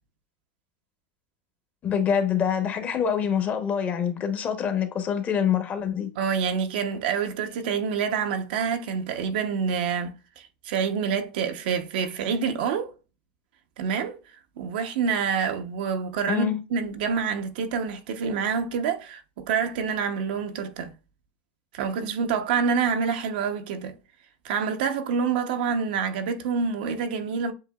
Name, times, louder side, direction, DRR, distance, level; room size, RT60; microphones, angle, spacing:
voice 1, 1.8-6.1 16.3-16.6, left 8 dB, 35° left, 0.9 m, -25 dB
voice 2, 6.2-12.9 13.8-14.2 14.6-20.9 21.7-23.9 24.4-27.5, right 6 dB, 75° right, 0.8 m, -27 dB
7.7 x 2.8 x 2.3 m
supercardioid pair, 125°, 5 cm